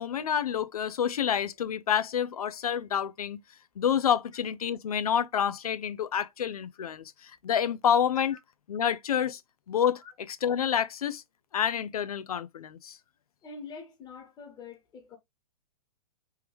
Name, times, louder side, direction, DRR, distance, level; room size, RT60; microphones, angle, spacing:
voice 1, 0.0-3.4 3.8-8.4 8.7-9.4 9.7-10.0 10.3-11.2 11.5-13.0, left 8 dB, 90° left, 0.5 m, -28 dB
voice 2, 13.4-15.2, left 4 dB, 25° left, 1.4 m, -45 dB
3.6 x 3.1 x 3.0 m
hypercardioid pair, 130°, 18 cm